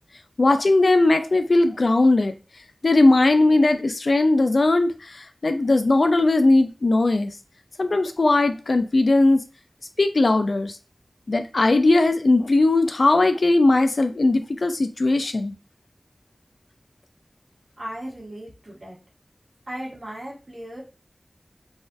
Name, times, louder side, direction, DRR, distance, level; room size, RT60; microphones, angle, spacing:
voice 1, 0.4-2.3 2.8-7.3 7.8-9.4 10.0-10.7 11.3-15.5, left 2 dB, 75° left, 8 dB, 0.4 m, -19 dB
voice 2, 17.8-19.0 19.7-20.8, right 1 dB, 60° right, -4 dB, 1.7 m, -36 dB
4.0 x 2.5 x 2.4 m, 0.31 s
wide cardioid pair, 50°, 0 cm